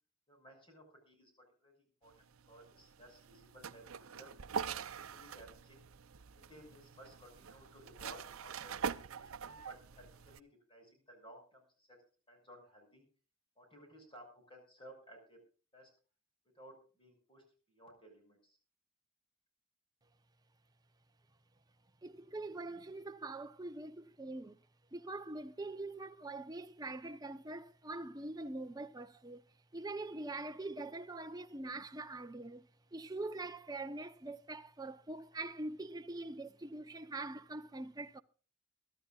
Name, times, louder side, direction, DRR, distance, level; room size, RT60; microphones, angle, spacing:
voice 1, 0.3-4.3 4.8-5.8 6.3-12.0 12.3-13.0 13.6-15.4 15.7-15.9 16.4-18.6, equal, 25° left, 6.1 m, -58 dB
sound 1, 2.1-10.4, right 7 dB, 75° right, 0.7 m, -44 dB
voice 2, 22.0-24.6 24.9-29.4 29.7-38.2, right 2 dB, 20° right, 0.7 m, -44 dB
22.5 x 13.0 x 2.4 m
head